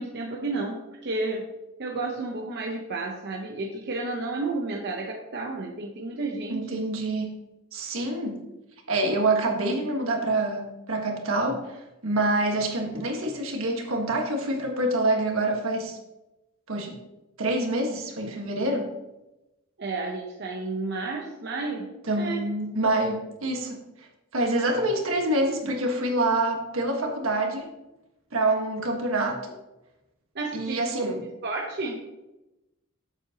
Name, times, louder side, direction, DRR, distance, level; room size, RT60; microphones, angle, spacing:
voice 1, 0.0-1.5 1.8-6.8 19.8-22.5 30.3-31.0 31.4-32.1, right 3 dB, 55° right, 0 dB, 0.8 m, -32 dB
voice 2, 6.5-7.4 7.7-8.4 8.9-16.0 16.7-16.9 17.4-18.9 22.1-23.8 24.3-27.7 28.3-29.5 30.5-31.2, right 2 dB, 75° right, 2 dB, 1.5 m, -26 dB
7.8 x 7.4 x 2.9 m, 0.97 s
head